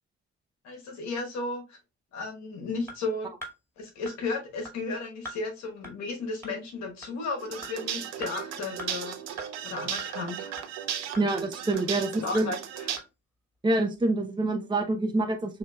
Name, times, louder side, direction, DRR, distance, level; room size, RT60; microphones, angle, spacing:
voice 1, 0.6-1.8 2.1-3.3 3.8-10.6 12.2-13.0, left 3 dB, 70° left, 1.3 m, -34 dB
sound 1, 2.9-3.0 3.4-3.5 4.1-4.2 4.7-4.8 5.3-5.4 5.8-5.9 6.4-6.5 7.0-7.1 7.6-7.7 8.2-8.3 8.8-8.9 9.4-9.5 10.0-10.1 10.6-10.7 11.1-11.3 11.7-11.8 12.3-12.4 13.0-13.1, equal, 10° left, 2.2 m, -41 dB
sound 2, 7.4-13.0, right 9 dB, 60° right, 0.8 m, -36 dB
voice 2, 11.2-12.5 13.6-15.6, right 2 dB, 15° right, 0.7 m, -26 dB
6.2 x 2.7 x 2.3 m
hypercardioid pair, 45°, 29 cm